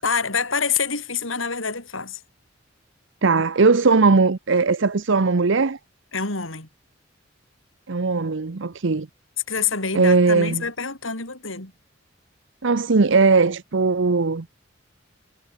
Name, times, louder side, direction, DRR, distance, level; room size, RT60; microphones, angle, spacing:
voice 1, 0.0-2.2 6.1-6.7 9.5-11.7, left 5 dB, 90° left, 6.5 m, -26 dB
voice 2, 3.2-5.8 7.9-9.1 9.9-10.6 12.6-14.5, right 4 dB, 65° right, 0.8 m, -19 dB
head